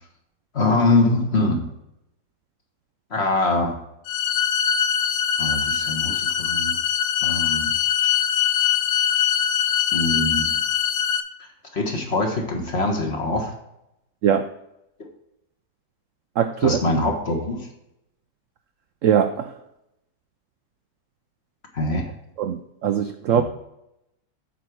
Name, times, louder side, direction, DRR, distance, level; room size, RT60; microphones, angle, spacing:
voice 1, 0.5-1.6 3.1-3.8 5.4-6.7 7.2-7.7 9.9-10.5 11.7-13.5 16.6-17.7 21.7-22.0 23.3-23.4, left 2 dB, 40° left, 2 dB, 1.6 m, -23 dB
sound 1, 4.1-11.2, left 9 dB, 75° left, 1.2 m, -22 dB
voice 2, 16.4-16.8 19.0-19.5 22.4-23.4, right 8 dB, 70° right, 8 dB, 0.7 m, -21 dB
8.2 x 4.8 x 6.1 m, 0.85 s
omnidirectional pair, 1.8 m